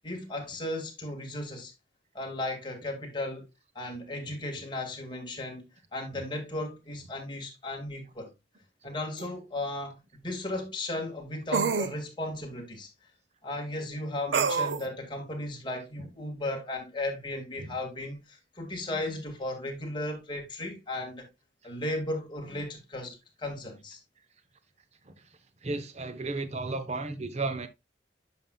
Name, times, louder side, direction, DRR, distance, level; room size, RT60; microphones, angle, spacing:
voice 1, 0.0-1.7 2.1-3.4 3.8-8.3 8.8-12.9 13.4-21.3 21.6-24.0, left 1 dB, 30° left, 2.0 m, -35 dB
sound 1, 9.2-9.3 11.5-11.9 14.3-14.8, right 5 dB, 90° right, 0.6 m, -26 dB
voice 2, 25.6-27.7, right 3 dB, 40° right, 0.8 m, -33 dB
9.1 x 6.0 x 2.3 m
head